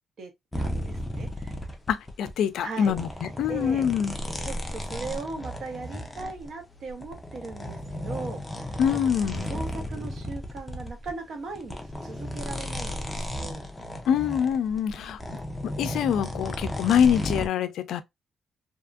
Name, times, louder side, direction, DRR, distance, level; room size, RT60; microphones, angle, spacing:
sound 1, 0.5-2.3 2.8-11.2 11.5-17.5, left 1 dB, 10° left, 0.5 m, -34 dB
voice 1, 0.6-1.6 2.6-2.9 3.5-3.8 4.4-13.7 14.9-15.1, right 3 dB, 60° right, 0.8 m, -39 dB
voice 2, 1.9-4.1 8.8-9.5 14.1-15.2 15.8-18.0, left 8 dB, 85° left, 0.3 m, -25 dB
2.8 x 2.5 x 2.2 m
cardioid pair, 135°, 0 cm